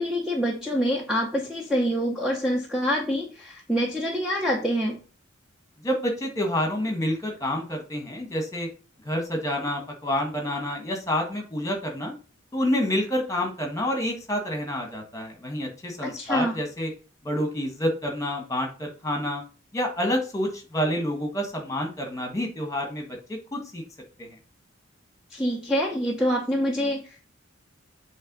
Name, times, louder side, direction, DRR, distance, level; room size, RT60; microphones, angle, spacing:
voice 1, 0.0-5.0 16.0-16.6 25.3-27.2, equal, 5° right, -2 dB, 0.8 m, -26 dB
voice 2, 5.8-8.7 9.0-12.1 12.5-16.9 17.2-19.4 19.7-23.8 24.2-24.3, left 1 dB, 15° left, 3 dB, 1.6 m, -28 dB
7.8 x 3.4 x 5.3 m, 0.36 s
head